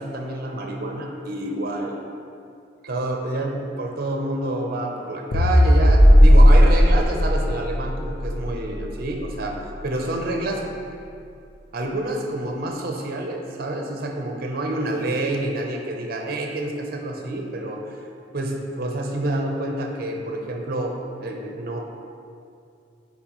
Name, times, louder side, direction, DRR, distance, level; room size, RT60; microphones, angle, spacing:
voice 1, 0.0-2.0 2.8-9.6 9.8-10.6 11.7-18.0 18.3-20.9 21.2-21.8, right 1 dB, 50° right, 2 dB, 0.7 m, -28 dB
sound 1, 5.3-9.8, equal, 85° left, 0.7 m, -15 dB
8.2 x 4.2 x 3.0 m, 2.5 s
head